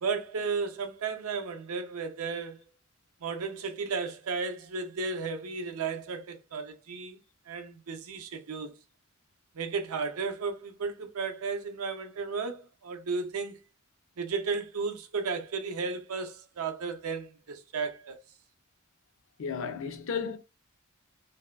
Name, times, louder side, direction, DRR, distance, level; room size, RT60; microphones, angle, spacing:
voice 1, 0.0-2.6 3.2-7.2 7.5-8.7 9.5-13.6 14.2-18.2, right 4 dB, 85° right, 0.5 m, -34 dB
voice 2, 19.4-20.4, left 6 dB, 65° left, 0.4 m, -33 dB
2.6 x 2.2 x 2.2 m
head